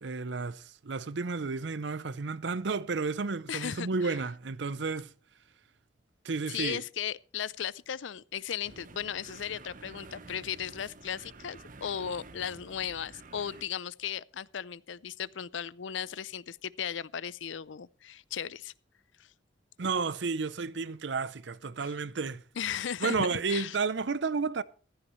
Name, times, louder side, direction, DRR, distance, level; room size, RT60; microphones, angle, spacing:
voice 1, 0.0-5.1 6.2-6.8 19.8-22.4 23.0-24.6, right 4 dB, 70° right, 0.6 m, -32 dB
voice 2, 3.5-4.2 6.5-18.7 22.6-23.8, left 8 dB, 80° left, 0.5 m, -36 dB
sound 1, 8.6-13.6, right 3 dB, 45° right, 1.0 m, -50 dB
15.0 x 14.0 x 3.1 m
head